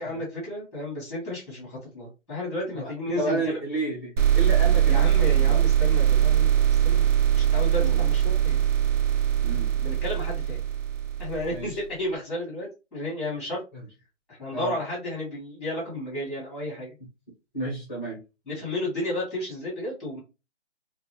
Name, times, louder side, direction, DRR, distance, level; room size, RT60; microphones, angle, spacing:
voice 1, 0.0-3.5 4.8-8.6 9.7-10.6 11.2-13.6 14.3-16.9 18.5-20.2, left 1 dB, ahead, -6 dB, 0.9 m, -33 dB
voice 2, 3.2-5.1 5.4-5.6 7.8-8.0 9.4-9.7 11.5-11.8 14.5-14.8 17.5-18.2, right 2 dB, 15° left, -3 dB, 0.6 m, -31 dB
sound 1, 4.2-11.7, right 10 dB, 85° right, 0.6 m, -22 dB
2.5 x 2.3 x 2.9 m, 0.28 s
hypercardioid pair, 160°, 37 cm